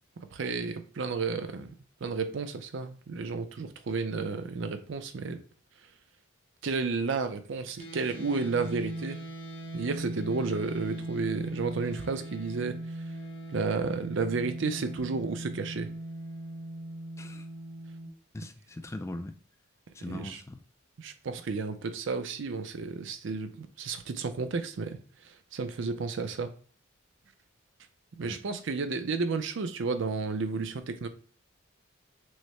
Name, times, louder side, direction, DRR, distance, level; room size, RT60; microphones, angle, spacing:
voice 1, 0.3-1.7 2.0-5.4 6.6-9.2 9.7-12.8 13.5-15.9 20.1-20.4 21.0-25.0 25.2-26.5 28.2-31.1, right 4 dB, 60° right, 0.5 m, -32 dB
sound 1, 7.8-18.1, right 1 dB, 60° left, 1.7 m, -39 dB
voice 2, 17.2-17.5 18.3-19.4 19.9-20.6 28.3-28.4, left 1 dB, 15° left, 0.3 m, -40 dB
6.3 x 2.1 x 3.2 m
head